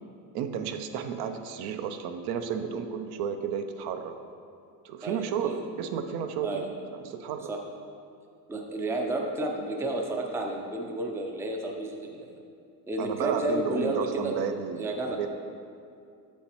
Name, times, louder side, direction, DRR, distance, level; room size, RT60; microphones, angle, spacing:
voice 1, 0.3-4.2 4.8-7.5 13.0-15.3, right 7 dB, 60° right, 7 dB, 0.5 m, -32 dB
voice 2, 5.0-5.6 6.4-6.7 7.5-7.6 8.5-12.3 12.9-14.3 14.8-15.2, right 1 dB, 5° right, 1 dB, 0.4 m, -31 dB
7.2 x 7.1 x 3.0 m, 2.4 s
cardioid pair, 125°, 44 cm